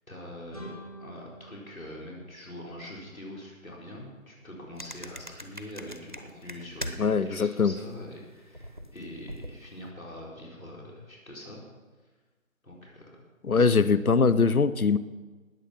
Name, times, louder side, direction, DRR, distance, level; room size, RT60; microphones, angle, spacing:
voice 1, 0.1-0.7 1.0-11.6 12.6-13.2 13.5-13.7, left 1 dB, 75° left, -2 dB, 4.3 m, -43 dB
sound 1, 0.5-3.3, equal, 25° left, 1.4 m, -48 dB
sound 2, 4.8-7.3 7.5-9.8, equal, 35° right, 0.8 m, -41 dB
voice 2, 7.0-7.7 13.4-15.0, left 5 dB, 90° left, 15 dB, 0.9 m, -22 dB
19.0 x 7.7 x 5.7 m, 1.3 s
figure-of-eight pair, 175°, 42 cm